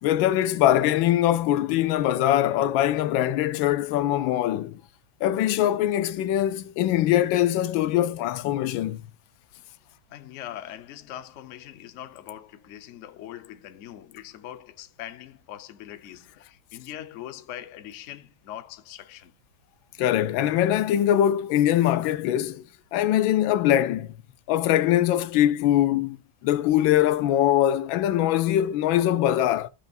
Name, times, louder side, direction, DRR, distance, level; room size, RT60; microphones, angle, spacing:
voice 1, 0.0-4.8 5.2-9.0 20.0-22.6 22.9-24.1 24.5-26.2 26.4-29.7, left 12 dB, 85° left, 1.4 m, -22 dB
voice 2, 9.8-19.3, left 12 dB, 65° left, 0.7 m, -42 dB
15.0 x 5.3 x 2.4 m
omnidirectional pair, 2.1 m